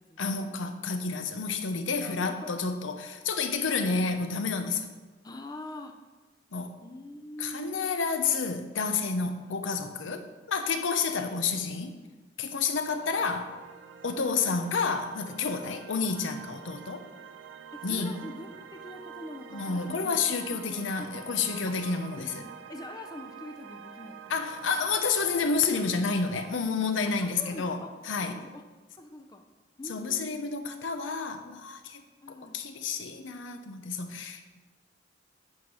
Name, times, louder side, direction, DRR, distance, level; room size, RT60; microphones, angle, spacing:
voice 1, 0.2-4.9 6.5-6.7 7.4-12.0 12.4-13.6 14.0-17.1 17.8-18.1 19.5-22.4 24.3-27.8 28.1-28.4 29.9-32.0 32.5-34.6, left 4 dB, 90° left, 0.7 m, -30 dB
voice 2, 2.0-2.5 3.7-4.0 5.2-6.0 6.8-7.9 9.3-9.4 11.2-11.5 11.8-12.1 14.1-14.3 17.7-20.2 20.7-21.7 22.1-24.7 27.1-27.9 28.3-28.6 28.9-29.4 29.8-30.5 32.2-32.6, left 1 dB, 20° left, 0.5 m, -45 dB
sound 1, 12.8-26.6, right 7 dB, 80° right, 0.6 m, -47 dB
8.5 x 4.8 x 5.5 m
head